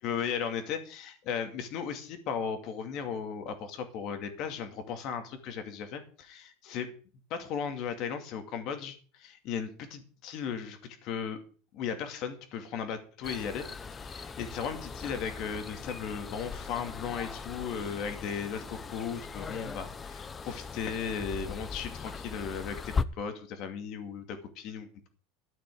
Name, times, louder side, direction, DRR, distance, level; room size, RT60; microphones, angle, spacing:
voice 1, 0.0-6.9 7.3-11.4 11.7-13.7 14.0-25.1, left 7 dB, 45° left, 8 dB, 2.3 m, -36 dB
sound 1, 13.2-23.0, left 5 dB, 15° left, 0.6 m, -39 dB
13.5 x 6.1 x 9.2 m, 0.41 s
supercardioid pair, 155°, 0 cm